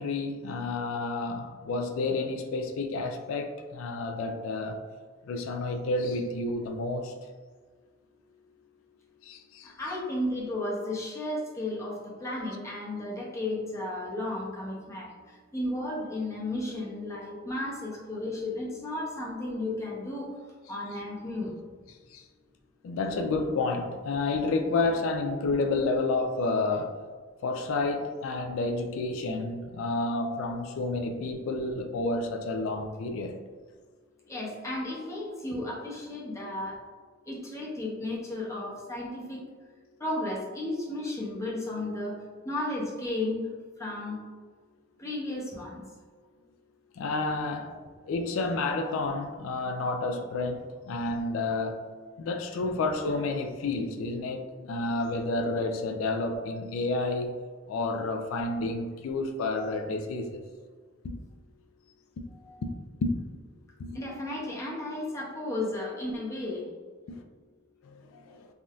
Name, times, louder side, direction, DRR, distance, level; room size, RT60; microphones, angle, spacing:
voice 1, 0.0-4.8 5.3-7.1 9.2-9.7 22.1-22.2 22.8-27.0 27.4-33.4 46.9-51.8 52.2-57.4 57.7-60.4 61.0-61.2 62.6-62.7 63.0-63.1 63.8-64.0 67.1-67.2 67.8-68.5, left 3 dB, 90° left, 0.3 m, -30 dB
voice 2, 9.6-15.1 15.5-20.3 20.7-21.5 34.3-36.8 37.3-39.4 40.0-42.1 42.4-43.4 43.8-44.2 45.0-45.8 59.6-59.7 62.3-62.6 63.9-66.6, left 1 dB, 15° left, 0.7 m, -34 dB
3.4 x 2.5 x 2.3 m
head